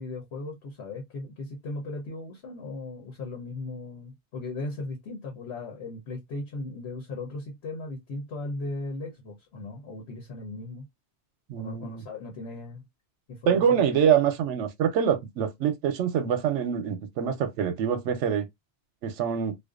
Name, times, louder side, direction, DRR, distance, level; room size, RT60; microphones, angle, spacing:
voice 1, 0.0-10.9 11.6-12.8 13.3-13.9, left 2 dB, 70° left, 1.0 m, -37 dB
voice 2, 11.5-12.0 13.5-18.5 19.0-19.6, right 8 dB, 85° right, 0.9 m, -25 dB
2.5 x 2.2 x 2.3 m
omnidirectional pair, 1.2 m